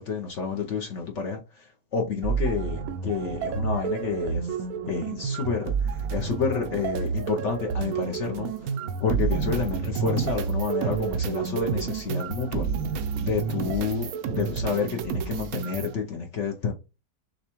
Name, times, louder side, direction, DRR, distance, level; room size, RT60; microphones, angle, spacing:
voice 1, 0.0-8.7 9.0-12.7 13.2-16.7, left 5 dB, 60° left, 0.7 m, -29 dB
sound 1, 2.2-15.9, right 6 dB, 70° right, 0.8 m, -29 dB
6.5 x 2.3 x 3.0 m
omnidirectional pair, 1.9 m